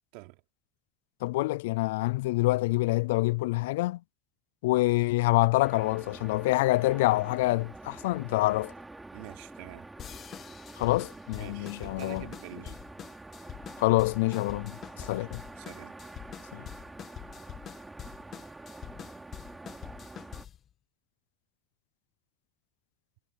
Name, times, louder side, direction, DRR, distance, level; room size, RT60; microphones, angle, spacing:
voice 1, 1.2-4.0 4.6-8.7 10.8-12.2 13.8-15.4 16.5-16.6, left 20 dB, 85° left, 0.3 m, -26 dB
sound 1, 5.6-20.4, right 2 dB, 10° right, 3.6 m, -47 dB
voice 2, 9.1-9.9 11.3-12.8 14.9-15.3 15.6-16.0, right 24 dB, 70° right, 3.4 m, -47 dB
sound 2, 10.0-20.7, left 9 dB, 35° left, 2.1 m, -45 dB
supercardioid pair, 120°, 0 cm